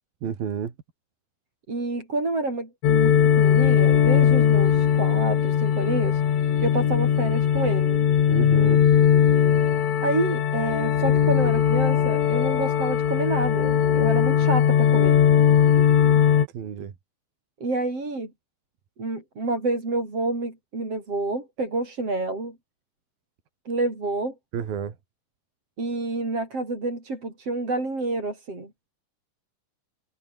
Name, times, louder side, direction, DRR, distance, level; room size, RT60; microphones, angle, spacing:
voice 1, 0.2-0.7 8.3-8.8 16.5-16.9 24.5-25.0, right 8 dB, 55° right, 4.4 m, -30 dB
voice 2, 1.7-6.2 6.6-8.0 10.0-15.2 17.6-18.3 19.0-22.6 23.7-24.3 25.8-28.7, right 2 dB, 30° right, 8.3 m, -28 dB
sound 1, 2.8-16.5, left 9 dB, 85° left, 6.0 m, -19 dB
omnidirectional pair, 5.5 m